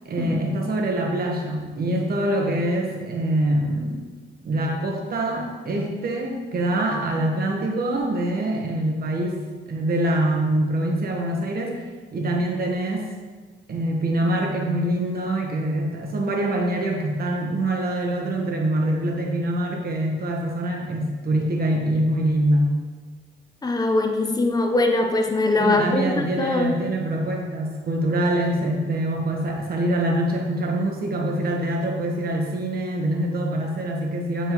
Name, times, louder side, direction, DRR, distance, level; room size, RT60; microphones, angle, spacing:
voice 1, 0.0-4.1 4.4-11.8 12.1-13.1 13.7-22.7 25.6-34.5, right 1 dB, 50° right, 0 dB, 1.3 m, -24 dB
voice 2, 23.6-26.7, left 2 dB, 20° left, 4 dB, 0.7 m, -22 dB
8.6 x 4.4 x 3.1 m, 1.4 s
cardioid pair, 90°, 20 cm